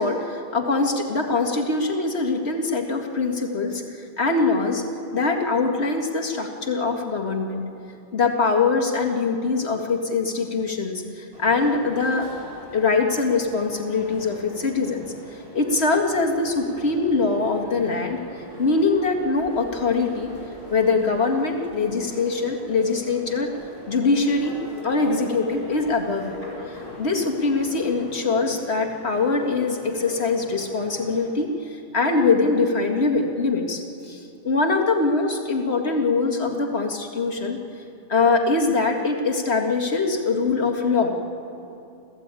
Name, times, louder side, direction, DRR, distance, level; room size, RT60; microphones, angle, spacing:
voice 1, 0.0-3.8 4.2-4.8 5.1-7.6 8.1-12.3 12.7-18.2 18.6-20.3 20.7-23.5 23.9-24.6 24.8-26.4 26.7-37.6 38.1-41.1, left 3 dB, 85° left, 2 dB, 2.3 m, -23 dB
sound 1, 11.3-31.2, left 1 dB, 70° right, 6.4 m, -41 dB
29.0 x 15.0 x 9.0 m, 2.7 s
omnidirectional pair, 1.1 m